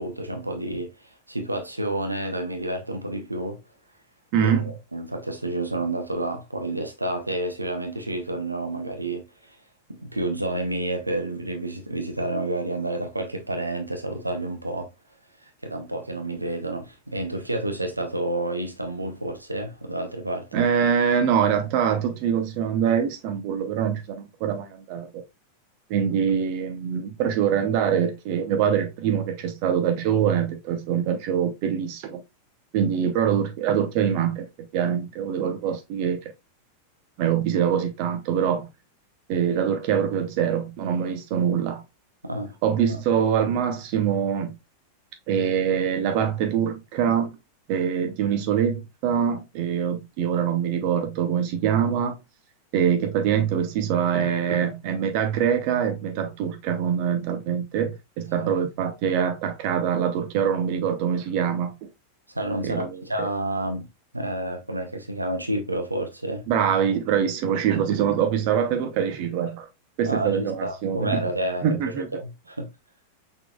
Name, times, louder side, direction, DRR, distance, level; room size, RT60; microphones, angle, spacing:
voice 1, 0.0-3.6 4.4-9.6 9.9-14.9 15.4-20.7 42.2-42.5 42.9-43.0 58.3-58.5 62.3-63.9 64.1-66.4 70.1-71.7 72.0-72.7, right 1 dB, 85° right, 0.8 m, -30 dB
voice 2, 4.3-4.7 20.5-25.2 25.9-32.2 32.7-34.5 34.7-36.3 37.2-38.7 39.3-41.8 42.6-44.6 45.3-47.3 47.7-52.2 52.7-61.7 62.6-63.3 66.5-69.7 70.0-71.2 71.6-72.1, right 8 dB, 45° right, 0.7 m, -24 dB
5.8 x 3.7 x 2.2 m
figure-of-eight pair, 90°, 0 cm